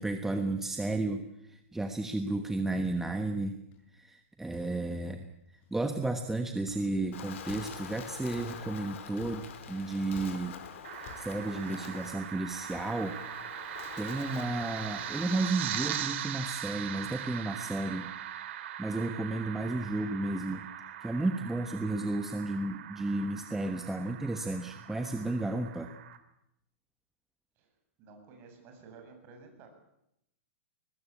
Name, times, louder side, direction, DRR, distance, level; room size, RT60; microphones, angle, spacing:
voice 1, 0.0-3.6 3.9-5.3 5.7-10.6 11.0-13.2 13.6-18.1 18.8-20.6 21.0-25.9, right 2 dB, 5° right, 6 dB, 1.3 m, -33 dB
sound 1, 2.4-2.5 2.8-3.4 3.7-3.9 4.5-5.1 5.4-6.0 6.7-7.1 7.5-8.0 8.3-8.8 9.2-9.7 10.1-10.6 11.0-11.5, left 5 dB, 40° left, 7.5 m, -53 dB
Wind, 7.1-16.0, left 7 dB, 65° left, 4.8 m, -46 dB
sound 2, 10.8-26.2, right 11 dB, 60° right, 2.9 m, -40 dB
voice 2, 28.0-29.7, right 4 dB, 35° right, 4 dB, 7.6 m, -53 dB
22.0 x 20.5 x 8.6 m, 0.80 s
hypercardioid pair, 150°, 7 cm